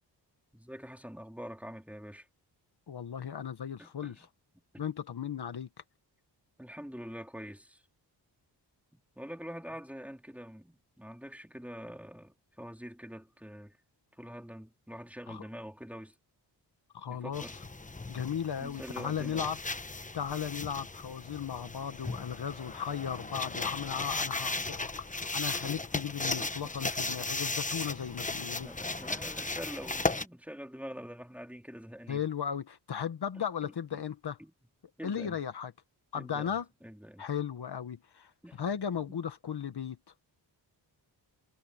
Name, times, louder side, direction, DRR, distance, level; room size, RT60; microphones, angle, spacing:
voice 1, 0.5-2.3 3.8-4.2 4.7-4.9 6.6-7.8 8.9-13.8 14.2-16.2 17.1-17.6 18.5-19.4 25.5-26.0 26.3-26.9 28.2-28.3 28.6-32.2 33.3-34.0 34.4-34.5 35.0-35.4 36.1-37.2 38.4-38.7 39.1-39.2, equal, 5° right, 2.8 m, -45 dB
voice 2, 2.9-4.3 4.8-5.7 15.3-15.4 16.9-17.4 18.1-19.6 20.1-28.7 32.1-34.4 35.0-35.7 36.1-36.7 37.2-38.3 38.6-40.0, left 8 dB, 60° left, 1.6 m, -36 dB
sound 1, 17.3-30.3, left 3 dB, 15° left, 1.2 m, -36 dB
cardioid pair, 75°, 44 cm